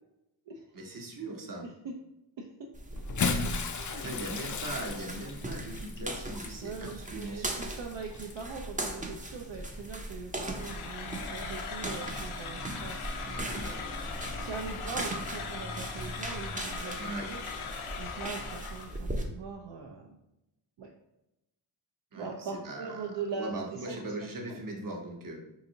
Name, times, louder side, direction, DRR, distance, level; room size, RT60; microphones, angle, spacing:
voice 1, 0.7-1.7 3.9-7.7 17.0-17.3 22.1-25.4, right 2 dB, 40° right, 1 dB, 0.9 m, -40 dB
voice 2, 1.6-1.9 2.4-2.7 3.7-4.0 4.4-4.6 6.6-17.4 17.7-20.2 20.8-20.9 22.1-24.0 24.5-24.6, right 5 dB, 65° right, 0 dB, 0.6 m, -41 dB
sound 1, 2.7-19.2, right 1 dB, 15° right, 0.5 m, -39 dB
Bathtub (filling or washing) / Splash splatter, 3.0-8.6 9.5-9.7 11.2-11.3, left 5 dB, 40° left, 0.4 m, -36 dB
sound 2, 10.5-19.0, left 5 dB, 85° left, 0.6 m, -40 dB
3.9 x 2.6 x 2.8 m, 0.90 s
cardioid pair, 55°, 48 cm